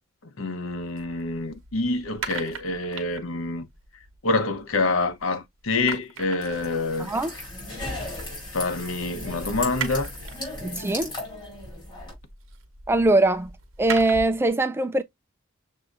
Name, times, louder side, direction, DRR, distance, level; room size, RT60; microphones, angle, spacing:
voice 1, 0.2-3.7 4.2-7.1 8.5-10.1, left 3 dB, 80° left, 0.9 m, -27 dB
sound 1, 0.7-5.3 5.6-14.5, right 5 dB, 80° right, 1.0 m, -40 dB
sound 2, 6.5-12.1, left 1 dB, 20° left, 3.3 m, -36 dB
voice 2, 7.0-7.3 10.6-11.1 12.9-13.5 13.8-15.0, right 2 dB, 10° right, 0.3 m, -22 dB
6.6 x 2.7 x 2.5 m
head